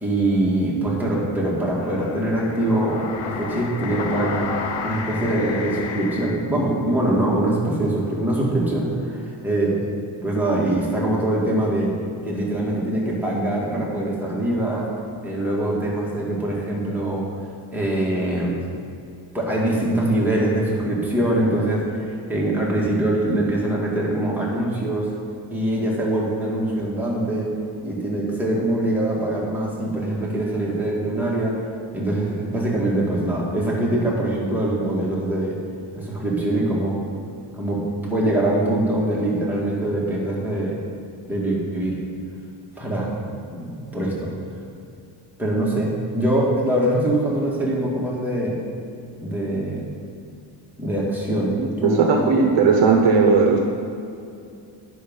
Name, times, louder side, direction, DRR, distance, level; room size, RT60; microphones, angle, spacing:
voice 1, 0.0-4.4 4.8-9.8 10.2-11.9 12.3-14.9 15.2-17.3 17.7-18.7 19.3-25.1 25.5-27.5 27.8-31.6 31.9-35.6 35.9-37.0 37.6-40.8 41.3-42.0 42.8-44.3 45.4-48.6 49.2-49.8 50.8-52.3, right 1 dB, 5° right, -6 dB, 2.1 m, -23 dB
sound 1, 1.1-6.3, left 5 dB, 85° left, 1.0 m, -31 dB
voice 2, 51.6-53.7, right 4 dB, 60° right, 2 dB, 1.1 m, -17 dB
9.9 x 6.3 x 5.5 m, 2.5 s
cardioid pair, 135°, 49 cm